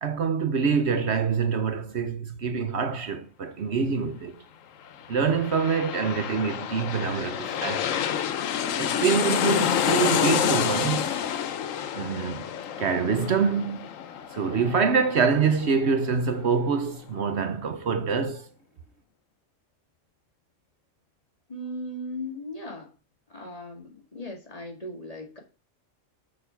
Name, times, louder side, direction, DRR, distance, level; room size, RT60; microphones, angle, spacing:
voice 1, 0.0-4.4 5.1-8.0 8.8-11.2 11.9-12.5 12.8-13.9 14.3-18.5, right 6 dB, 60° right, 1.0 m, -25 dB
sound 1, 5.0-16.4 16.8-16.9, left 9 dB, 90° left, 1.2 m, -28 dB
voice 2, 21.5-22.9 23.3-25.4, left 1 dB, 30° left, 2.1 m, -37 dB
6.6 x 6.2 x 5.7 m
omnidirectional pair, 1.3 m